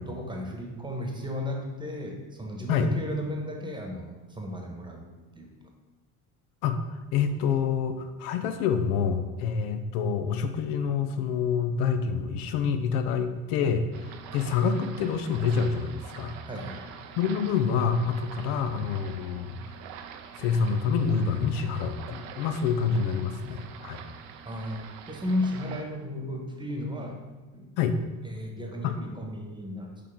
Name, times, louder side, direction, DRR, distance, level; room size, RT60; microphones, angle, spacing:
voice 1, 0.1-5.1 5.3-5.5 16.5-16.9 24.4-27.2 27.5-27.7 28.2-30.0, left 1 dB, 10° right, 1 dB, 1.3 m, -34 dB
voice 2, 6.6-16.3 17.2-19.6 20.4-24.0 27.8-28.0 28.8-29.0, left 6 dB, 55° left, 8 dB, 0.8 m, -27 dB
sound 1, 13.9-25.8, right 7 dB, 55° right, 0.7 m, -45 dB
6.7 x 5.1 x 3.6 m, 1.3 s
figure-of-eight pair, 60°, 45 cm